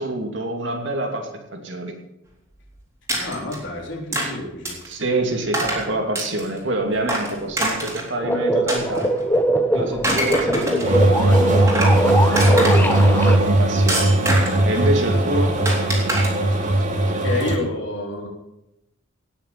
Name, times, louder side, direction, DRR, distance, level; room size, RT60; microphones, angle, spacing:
voice 1, 0.0-1.9 4.9-9.1 9.7-12.1 12.3-14.1 14.7-15.6, right 1 dB, 60° right, 3 dB, 2.7 m, -26 dB
voice 2, 3.1-4.8 15.9-16.0 17.2-18.3, left 2 dB, 60° left, 0 dB, 3.7 m, -29 dB
sound 1, 3.1-3.6 4.1-4.3 4.6-4.9 5.5-5.8 6.2-6.6 7.1-8.1 8.7-9.4 9.9-11.0 11.4-12.0 12.4-13.1 13.9-14.7 15.7-16.3, right 1 dB, 15° right, 3.5 m, -25 dB
sound 2, 8.2-13.4, right 1 dB, 10° left, 1.0 m, -21 dB
sound 3, 10.8-17.6, right 1 dB, 35° right, 2.6 m, -18 dB
18.0 x 7.3 x 7.7 m, 0.87 s
head